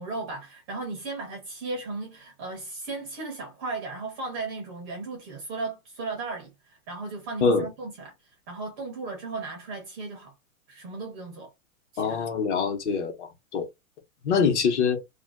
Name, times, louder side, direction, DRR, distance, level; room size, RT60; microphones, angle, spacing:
voice 1, 0.0-8.1 8.5-10.3 10.7-11.5 11.9-12.3 14.3-14.5, right 3 dB, 20° right, 0.4 m, -36 dB
voice 2, 12.0-13.7 14.2-15.0, left 5 dB, 55° left, 1.0 m, -24 dB
2.4 x 2.2 x 3.5 m
hypercardioid pair, 145°, 42 cm